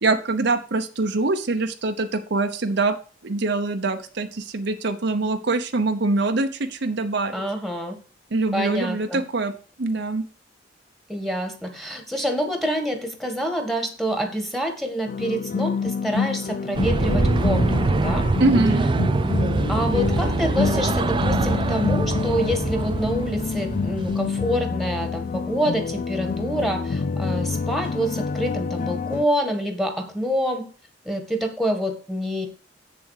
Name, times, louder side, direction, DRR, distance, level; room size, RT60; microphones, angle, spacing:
voice 1, 0.0-2.9 3.2-7.4 8.3-9.5 9.8-10.2 18.4-18.8, right 3 dB, 65° right, 7 dB, 0.8 m, -23 dB
voice 2, 7.3-7.9 8.5-9.2 11.1-18.3 19.7-30.7 31.0-32.5, equal, ahead, 6 dB, 1.7 m, -27 dB
sound 1, 15.1-29.3, left 4 dB, 45° left, 0.4 m, -27 dB
sound 2, 16.7-24.4, right 3 dB, 25° right, 0.3 m, -24 dB
7.7 x 7.1 x 4.8 m, 0.39 s
head